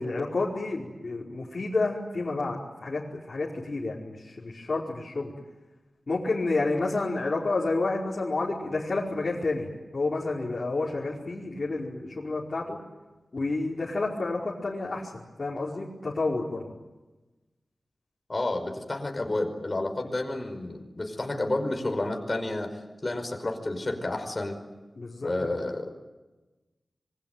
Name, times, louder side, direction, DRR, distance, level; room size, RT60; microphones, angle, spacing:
voice 1, 0.0-5.3 6.1-9.7 9.9-12.8 13.3-16.6 24.9-25.5, left 3 dB, 50° left, -6 dB, 5.0 m, -30 dB
voice 2, 18.3-24.6 25.2-25.9, left 2 dB, 35° left, 4 dB, 5.3 m, -30 dB
26.5 x 24.0 x 9.3 m, 1.1 s
wide cardioid pair, 110°, 0 cm